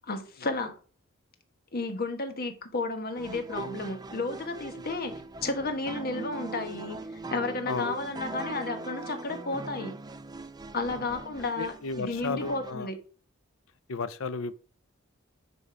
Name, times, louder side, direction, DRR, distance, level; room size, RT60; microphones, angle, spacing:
voice 1, 0.1-0.7 1.7-5.1 5.4-7.0 7.3-9.9 10.7-13.0, left 3 dB, 50° left, 1.3 m, -32 dB
sound 1, 3.2-12.7, right 3 dB, 20° right, 0.5 m, -41 dB
voice 2, 11.6-12.9 13.9-14.5, left 4 dB, 80° left, 0.6 m, -34 dB
10.0 x 4.1 x 5.0 m
head